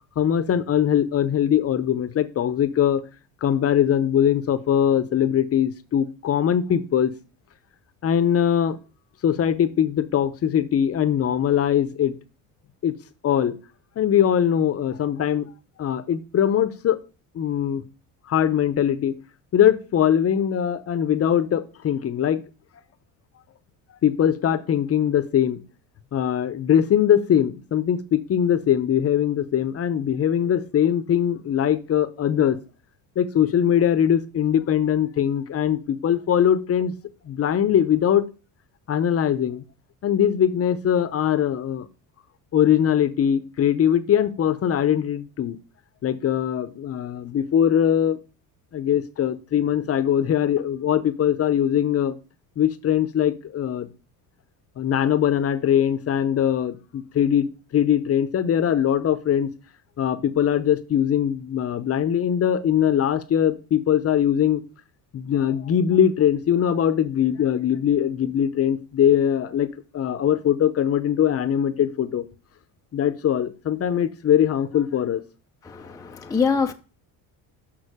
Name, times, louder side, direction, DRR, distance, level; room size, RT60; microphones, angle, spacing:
voice 1, 0.2-3.0 3.4-7.1 8.0-8.8 9.2-12.2 12.8-12.9 13.2-13.6 14.0-15.5 15.8-17.0 17.3-17.8 18.3-19.1 19.5-22.4 24.0-25.6 26.1-32.6 33.2-36.9 37.2-38.3 38.9-39.6 40.0-41.9 42.5-45.6 46.0-48.2 48.7-52.2 52.6-53.9 54.8-57.5 57.7-59.5 60.0-64.6 65.1-72.3 72.9-75.2, left 9 dB, 35° left, 0.8 m, -21 dB
voice 2, 75.6-76.7, left 5 dB, 10° left, 0.4 m, -24 dB
6.5 x 6.0 x 4.9 m
supercardioid pair, 100°, 39 cm